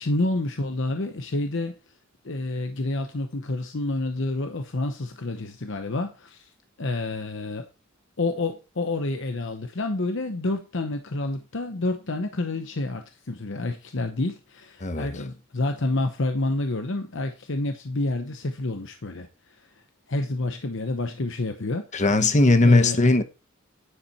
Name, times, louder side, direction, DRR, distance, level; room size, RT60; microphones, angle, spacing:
voice 1, 0.0-1.7 2.2-6.5 6.8-7.7 8.2-19.6 20.1-21.8 22.6-23.0, left 2 dB, 60° left, 0.9 m, -28 dB
voice 2, 21.9-23.2, left 2 dB, 35° left, 0.9 m, -18 dB
10.0 x 7.4 x 4.2 m
head